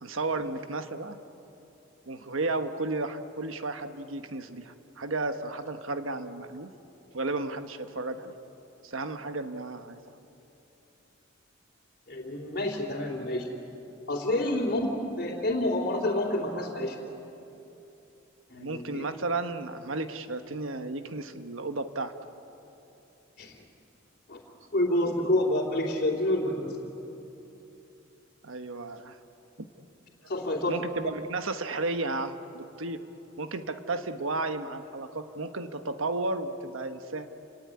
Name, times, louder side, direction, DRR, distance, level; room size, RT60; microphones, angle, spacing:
voice 1, 0.0-1.2 2.1-6.7 7.1-8.3 8.8-10.2 18.5-22.1 28.4-29.2 30.7-33.1 33.4-37.3, right 2 dB, 80° right, 8 dB, 1.2 m, -33 dB
voice 2, 12.1-13.5 14.1-17.0 18.5-19.1 23.4-23.6 24.3-24.4 24.7-26.8 30.3-31.0, left 1 dB, 45° left, -6 dB, 3.2 m, -28 dB
29.5 x 18.0 x 9.8 m, 3.0 s
head